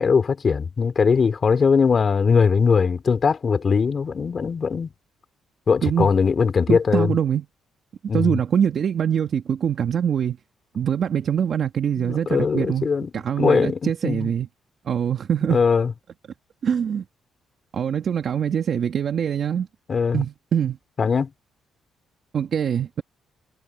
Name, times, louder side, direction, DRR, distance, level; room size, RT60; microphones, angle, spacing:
voice 1, 0.0-4.9 5.7-7.1 8.1-8.3 12.0-13.1 13.4-14.3 15.5-15.9 19.9-20.2 21.0-21.3, left 5 dB, 40° left, 3.6 m, -20 dB
voice 2, 6.7-7.5 8.1-10.4 10.7-12.9 13.1-14.5 14.9-15.6 16.6-17.0 17.7-19.7 20.1-20.8 22.3-23.0, right 8 dB, 55° right, 2.0 m, -23 dB
cardioid pair, 90°, 0 cm